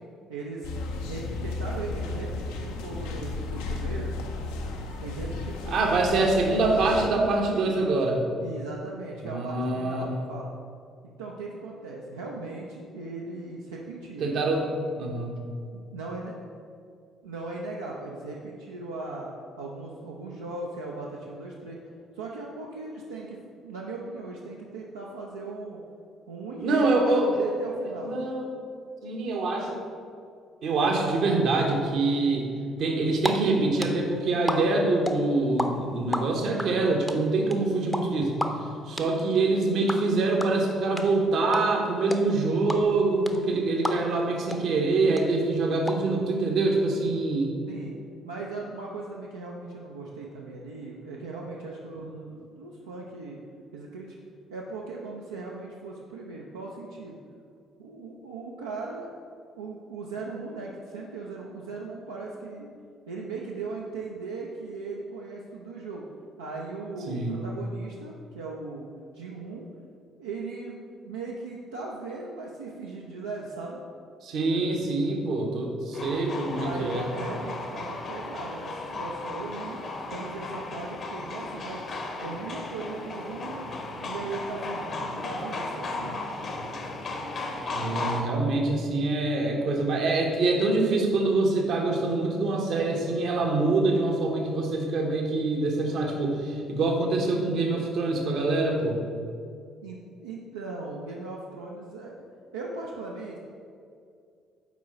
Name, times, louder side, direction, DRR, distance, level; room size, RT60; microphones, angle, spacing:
voice 1, 0.3-0.7 1.1-4.1 5.0-6.1 7.5-7.7 8.4-10.5 11.2-14.3 15.7-16.4 17.2-19.3 19.6-21.8 22.1-23.4 23.6-25.8 26.3-26.9 27.2-28.2 47.7-47.9 48.2-53.4 53.7-54.2 54.5-57.2 57.8-59.1 59.6-62.7 63.1-66.1 66.4-68.9 69.1-69.7 70.2-73.8 76.5-79.8 80.1-81.8 82.2-83.7 84.0-86.2 99.8-102.1 102.5-103.4, right 3 dB, 75° right, -4 dB, 0.5 m, -38 dB
sound 1, 0.6-7.1, left 3 dB, 70° left, 0.5 m, -34 dB
voice 2, 5.7-8.2 9.2-10.1 14.2-14.6 15.0-15.3 26.6-27.3 27.8-28.5 29.0-29.8 30.6-32.5 32.8-38.3 38.9-47.5 52.0-52.1 67.1-67.4 74.2-77.1 87.7-99.0, right 3 dB, 55° right, 1 dB, 0.9 m, -25 dB
sound 2, 33.1-33.3 33.6-35.7 35.9-44.2 44.5-44.6 44.9-45.9, left 1 dB, 5° left, 0.6 m, -31 dB
sound 3, 75.9-88.2, left 2 dB, 45° left, 0.8 m, -35 dB
6.1 x 4.6 x 4.1 m, 2.4 s
figure-of-eight pair, 45°, 0 cm